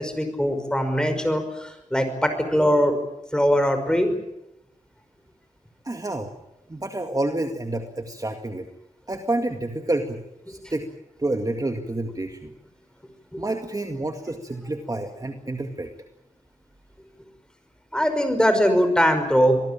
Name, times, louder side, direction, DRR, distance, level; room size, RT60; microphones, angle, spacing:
voice 1, 0.0-2.9 3.3-4.2 13.3-13.4 17.9-19.6, equal, 5° left, 7 dB, 5.5 m, -21 dB
voice 2, 5.8-6.3 6.7-8.7 9.1-10.9 11.2-12.5 13.4-15.9, right 2 dB, 30° right, 4 dB, 2.1 m, -29 dB
25.5 x 19.0 x 8.9 m, 0.88 s
wide cardioid pair, 90°, 13 cm